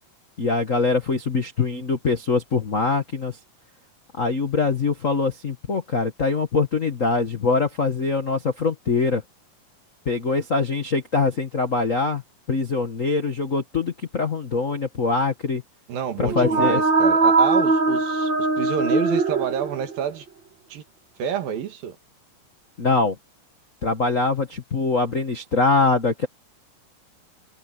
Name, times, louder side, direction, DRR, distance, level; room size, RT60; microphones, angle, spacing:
voice 1, 0.4-3.4 4.2-9.2 10.0-12.2 12.5-15.6 16.2-16.8 22.8-23.2 23.8-26.3, left 4 dB, 60° left, 0.8 m, -23 dB
voice 2, 15.9-20.3 20.7-20.8 21.2-22.0, right 8 dB, 85° right, 3.8 m, -28 dB
sound 1, 16.2-20.0, right 3 dB, 45° right, 1.8 m, -21 dB
omnidirectional pair, 4.0 m